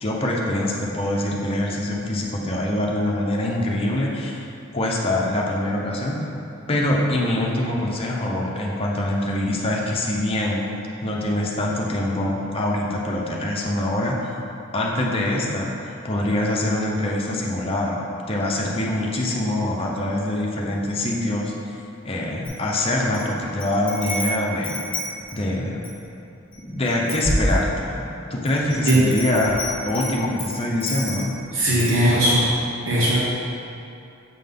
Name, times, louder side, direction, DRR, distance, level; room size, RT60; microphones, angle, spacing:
voice 1, 0.0-4.4 4.7-6.2 6.7-10.6 11.0-14.3 14.7-18.0 18.3-21.5 22.0-24.8 25.3-25.8 26.6-31.3, left 1 dB, 30° left, -3 dB, 0.7 m, -24 dB
Wind chime, 22.4-23.3 23.6-26.0 26.5-26.6 26.9-28.0 28.5-31.4 31.8-32.0, left 1 dB, 5° left, 1.5 m, -30 dB
voice 2, 31.5-32.5 32.9-33.2, right 1 dB, 65° right, -8 dB, 1.2 m, -18 dB
7.5 x 3.8 x 3.7 m, 2.7 s
head